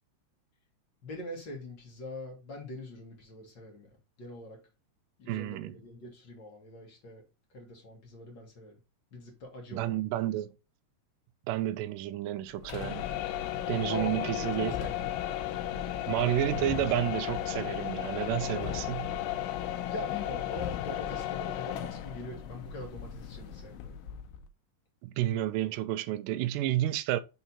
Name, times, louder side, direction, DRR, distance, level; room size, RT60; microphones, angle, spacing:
voice 1, 1.0-3.9 4.2-4.6 5.2-7.2 7.5-8.8 9.1-10.0 10.3-10.4 13.9-15.1 19.9-23.9, left 1 dB, 40° left, 1.9 m, -43 dB
voice 2, 5.3-5.8 9.7-10.5 11.5-13.0 13.7-14.8 16.1-19.1 25.0-27.2, right 13 dB, 80° right, 2.0 m, -31 dB
sound 1, 12.6-24.5, left 11 dB, 85° left, 2.3 m, -35 dB
6.0 x 4.0 x 4.1 m
omnidirectional pair, 4.2 m